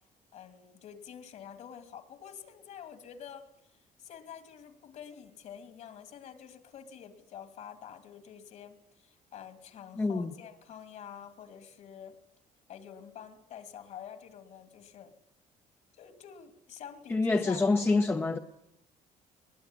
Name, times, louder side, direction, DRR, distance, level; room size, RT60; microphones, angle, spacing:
voice 1, 0.3-12.2 12.7-15.1 16.0-18.0, left 8 dB, 55° left, 2.8 m, -48 dB
voice 2, 10.0-10.3 17.1-18.4, left 3 dB, 15° left, 0.9 m, -26 dB
21.5 x 21.0 x 10.0 m
cardioid pair, 155°, 15 cm